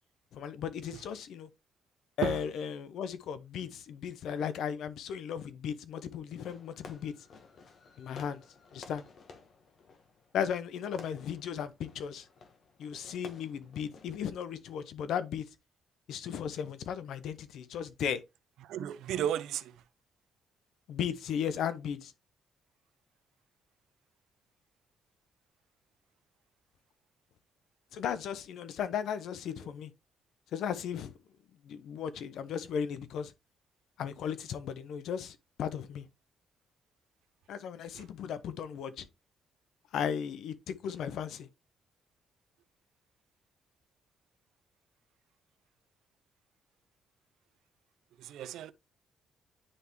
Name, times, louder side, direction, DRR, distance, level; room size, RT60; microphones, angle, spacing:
voice 1, 0.3-1.5 2.2-7.1 8.0-8.4 8.7-9.0 10.3-12.3 12.8-15.5 16.1-18.2 20.9-22.1 27.9-29.9 30.5-31.1 31.6-33.3 34.0-36.0 37.5-39.1 39.9-41.5, left 8 dB, 75° left, 0.7 m, -36 dB
Fireworks, 6.4-14.5, left 4 dB, 55° left, 1.2 m, -54 dB
voice 2, 18.6-19.7 37.9-38.0 48.2-48.7, right 10 dB, 85° right, 0.5 m, -34 dB
9.9 x 3.4 x 3.0 m
cardioid pair, 90°, 0 cm